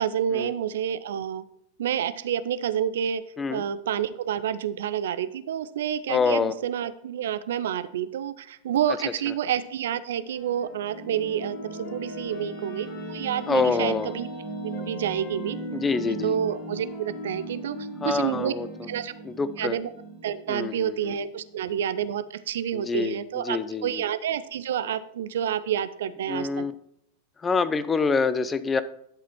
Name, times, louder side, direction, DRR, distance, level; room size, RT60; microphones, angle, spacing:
voice 1, 0.0-1.4 1.8-3.2 3.5-14.3 14.6-15.6 16.2-18.5 18.9-19.1 19.6-19.9 20.2-26.6, right 9 dB, 60° right, 14 dB, 0.4 m, -29 dB
voice 2, 6.1-6.5 13.5-14.1 15.7-16.3 18.0-18.7 19.3-19.8 20.5-21.1 22.7-23.2 23.4-23.9 26.3-26.7 27.4-28.8, left 5 dB, 15° left, 13 dB, 0.5 m, -26 dB
sound 1, 10.1-14.2 14.7-18.9, left 2 dB, 40° left, 2.3 m, -47 dB
sound 2, 10.3-21.6, right 2 dB, 70° left, 3.7 m, -38 dB
11.0 x 5.0 x 4.4 m, 0.72 s
figure-of-eight pair, 90°, 0 cm